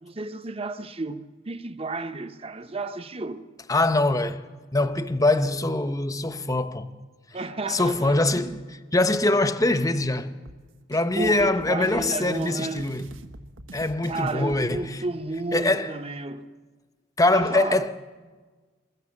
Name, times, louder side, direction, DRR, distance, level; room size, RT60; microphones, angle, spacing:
voice 1, 0.0-3.4 7.3-8.6 11.2-12.9 14.1-16.5 17.3-17.8, right 3 dB, 30° right, 0.9 m, -32 dB
voice 2, 3.7-4.4 4.7-6.9 7.7-8.6 8.9-10.3 10.9-13.1 13.7-15.0 15.5-15.9 17.2-17.9, left 2 dB, 15° left, 0.8 m, -23 dB
sound 1, 10.5-14.9, right 1 dB, 80° right, 1.4 m, -45 dB
24.0 x 21.5 x 7.3 m
head